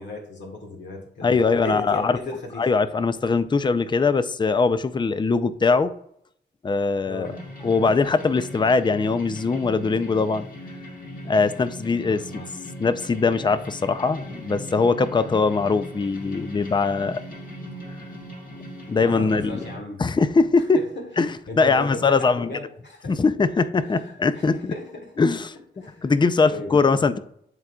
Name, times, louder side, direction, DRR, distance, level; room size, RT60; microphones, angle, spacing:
voice 1, 0.0-2.7 7.1-7.4 12.0-12.5 15.2-15.3 19.0-20.0 20.7-23.2 23.8-25.2 25.8-26.1 26.4-27.2, left 2 dB, 70° left, 0 dB, 1.4 m, -36 dB
voice 2, 1.2-2.2 2.6-5.9 6.6-7.3 7.6-10.5 11.3-12.4 12.8-17.2 18.9-19.6 20.0-20.8 21.2-22.5 23.1-24.7 25.2-25.5 26.0-27.2, left 4 dB, 25° left, 12 dB, 0.4 m, -21 dB
sound 1, 7.2-19.8, equal, 50° left, 1.9 m, -39 dB
11.0 x 3.7 x 2.3 m, 0.70 s
cardioid pair, 65°, 19 cm